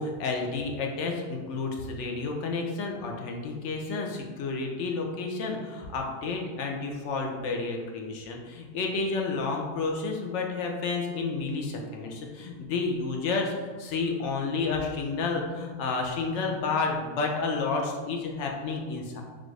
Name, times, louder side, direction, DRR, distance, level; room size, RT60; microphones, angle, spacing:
voice 1, 0.0-19.2, left 4 dB, 65° left, 1 dB, 0.8 m, -30 dB
4.1 x 3.0 x 3.1 m, 1.5 s
omnidirectional pair, 1.5 m